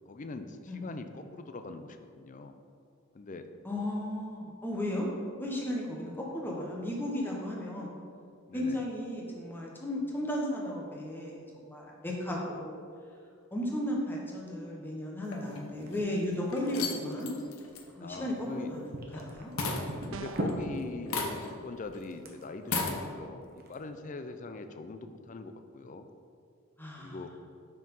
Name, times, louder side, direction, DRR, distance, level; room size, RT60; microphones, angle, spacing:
voice 1, 0.1-2.5 3.1-3.5 8.5-8.8 18.0-18.7 20.1-26.1 27.0-27.3, left 3 dB, 35° left, 8 dB, 0.4 m, -42 dB
voice 2, 3.6-5.1 5.4-8.0 8.5-12.8 13.5-17.3 18.0-19.5 26.8-27.2, left 1 dB, 10° left, -2 dB, 1.0 m, -35 dB
sound 1, 15.3-16.0 16.5-19.3 19.6-20.6 21.1-21.7 21.9-22.0 22.6-23.0, left 3 dB, 75° left, 0.8 m, -35 dB
sound 2, 15.8-18.6 18.9-23.8, right 1 dB, 45° right, 0.9 m, -40 dB
sound 3, 20.1-20.7, right 5 dB, 65° right, 0.3 m, -43 dB
5.9 x 4.7 x 5.4 m, 2.3 s
head